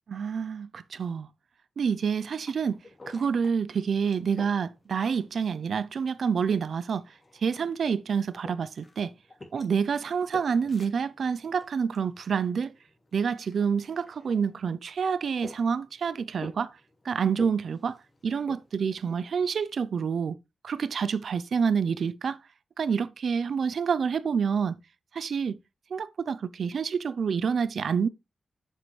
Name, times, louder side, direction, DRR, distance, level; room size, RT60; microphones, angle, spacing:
voice 1, 0.1-1.3 1.8-2.8 3.1-7.0 7.4-9.1 9.5-12.7 13.1-16.8 17.0-20.4 20.6-22.4 22.8-24.8 25.1-25.6 25.9-28.1, right 6 dB, 70° right, 0.6 m, -28 dB
sound 1, 1.9-19.8, left 2 dB, 30° left, 2.8 m, -51 dB
7.8 x 7.6 x 3.3 m
wide cardioid pair, 145°, 0 cm